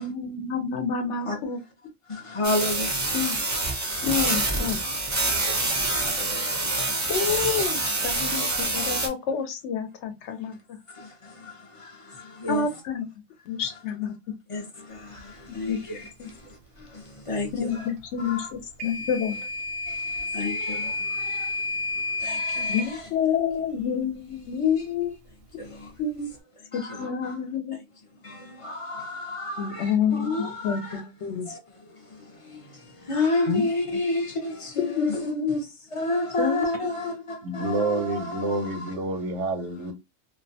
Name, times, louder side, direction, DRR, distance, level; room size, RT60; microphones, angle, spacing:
voice 1, 0.0-1.6 3.1-3.4 4.0-4.8 7.1-7.8 8.0-10.8 12.5-13.1 13.5-14.1 15.7-15.8 16.2-16.3 17.6-19.4 22.7-25.1 25.5-25.7 26.0-26.3 26.7-27.8 29.6-31.5 33.5-33.6 34.8-35.6 36.4-36.7 37.0-37.2, left 6 dB, 75° left, 0.9 m, -28 dB
voice 2, 2.1-3.6 3.9-4.4 5.3-7.0 7.3-7.5 8.8-9.0 10.5-10.6 10.9-12.7 14.5-17.9 18.2-18.5 19.9-23.1 25.6-25.9 26.7-27.4 27.7-27.8 28.2-39.0, left 2 dB, 40° left, 0.5 m, -32 dB
sound 1, 2.4-9.1, right 2 dB, 30° right, 0.3 m, -26 dB
Microwave oven / Alarm, 18.8-22.9, left 3 dB, 55° right, 0.7 m, -30 dB
voice 3, 37.4-39.9, right 2 dB, 85° right, 1.0 m, -28 dB
2.5 x 2.1 x 2.6 m
omnidirectional pair, 1.2 m